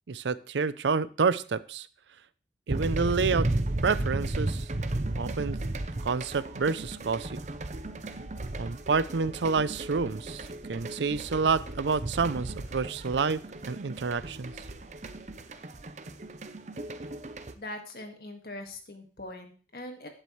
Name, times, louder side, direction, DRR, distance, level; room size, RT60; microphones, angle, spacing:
voice 1, 0.1-1.9 2.7-3.5 3.8-4.6 5.1-5.6 6.0-7.4 8.6-14.5, right 4 dB, 85° right, 17 dB, 0.5 m, -28 dB
sound 1, 2.7-17.5, right 2 dB, 40° right, 0.7 m, -35 dB
voice 2, 17.6-20.1, left 1 dB, 55° left, 4 dB, 1.9 m, -42 dB
12.0 x 10.0 x 3.2 m, 0.37 s
head